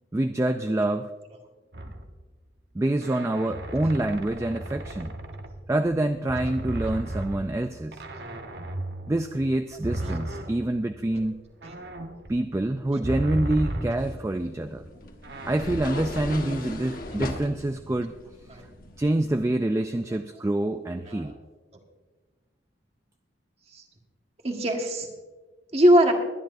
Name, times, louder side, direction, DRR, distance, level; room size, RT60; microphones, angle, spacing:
voice 1, 0.1-1.1 2.7-5.1 5.7-8.0 9.1-11.4 12.3-14.8 15.4-18.1 19.0-21.4, right 1 dB, 15° right, 8 dB, 0.3 m, -26 dB
sound 1, 1.7-2.3 3.0-6.0 6.3-14.4 15.2-15.6, right 1 dB, 55° right, 1.0 m, -35 dB
sound 2, 14.0-19.5, left 1 dB, 45° left, 1.2 m, -38 dB
voice 2, 24.4-25.1 25.7-26.1, equal, 30° right, 2 dB, 1.5 m, -22 dB
22.0 x 10.0 x 2.6 m, 1.3 s
head